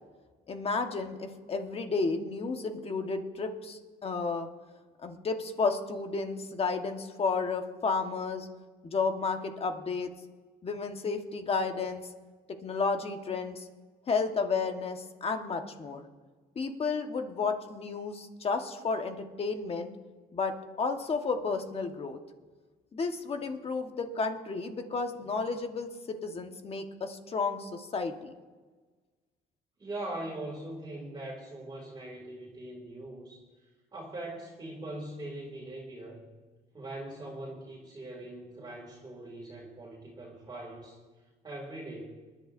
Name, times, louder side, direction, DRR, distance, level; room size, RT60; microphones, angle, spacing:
voice 1, 0.5-4.5 5.0-8.5 8.8-10.1 10.6-12.1 12.6-13.7 14.1-16.0 16.5-19.9 20.3-22.2 22.9-28.1, left 4 dB, 35° left, 5 dB, 1.4 m, -32 dB
voice 2, 29.8-33.5 33.9-36.2 36.7-41.0 41.4-42.1, right 1 dB, 25° right, -3 dB, 2.6 m, -41 dB
27.0 x 11.0 x 2.7 m, 1.4 s
cardioid pair, 110°, 17 cm